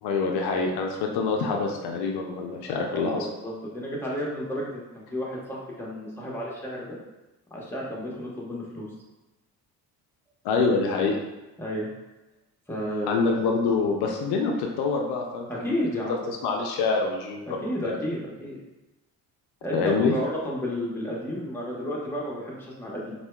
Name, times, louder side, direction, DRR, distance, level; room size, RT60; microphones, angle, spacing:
voice 1, 0.0-3.3 10.4-11.2 13.1-15.6 16.3-18.0 19.7-20.1, left 4 dB, 75° left, 2 dB, 0.5 m, -26 dB
voice 2, 2.9-4.8 5.1-7.0 7.5-8.9 11.6-11.9 12.7-13.3 15.5-16.2 17.5-18.6 19.6-23.1, equal, 5° left, -4 dB, 1.0 m, -32 dB
4.4 x 2.3 x 2.2 m, 1.1 s
supercardioid pair, 75°, 39 cm